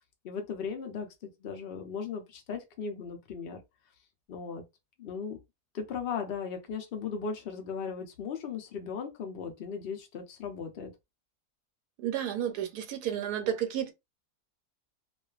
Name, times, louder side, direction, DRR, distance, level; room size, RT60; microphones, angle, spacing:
voice 1, 0.2-3.6 4.3-4.6 5.0-5.4 5.7-10.9, left 6 dB, 80° left, 0.5 m, -37 dB
voice 2, 12.0-13.9, right 10 dB, 80° right, 1.1 m, -31 dB
2.5 x 2.3 x 2.3 m
omnidirectional pair, 1.6 m